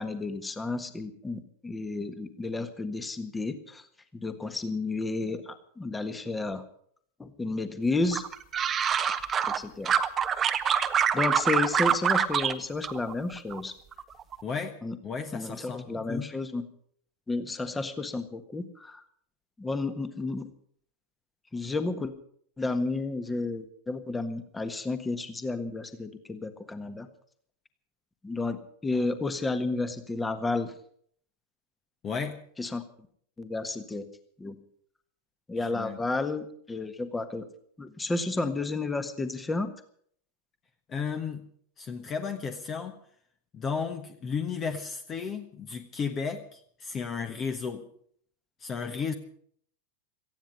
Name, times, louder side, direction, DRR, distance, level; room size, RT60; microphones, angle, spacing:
voice 1, 0.0-3.9 4.1-6.6 7.2-8.2 9.5-9.9 11.1-13.7 14.8-15.0 15.3-16.6 17.3-19.0 19.6-20.5 21.5-22.1 22.6-27.1 28.2-30.7 32.6-32.8 33.4-34.1 34.4-34.5 35.5-37.5 37.8-39.7, left 3 dB, 10° left, 10 dB, 1.6 m, -31 dB
sound 1, 8.1-9.6 9.9-12.5 12.8-13.6 13.9-14.4, right 8 dB, 25° right, 1.0 m, -25 dB
voice 2, 14.4-14.8 15.0-16.3 32.0-32.4 35.6-36.0 40.9-41.4 41.8-43.0 43.5-47.8 48.6-49.1, left 5 dB, 25° left, 7 dB, 1.3 m, -34 dB
18.5 x 14.5 x 5.4 m, 0.62 s
figure-of-eight pair, 90°, 0 cm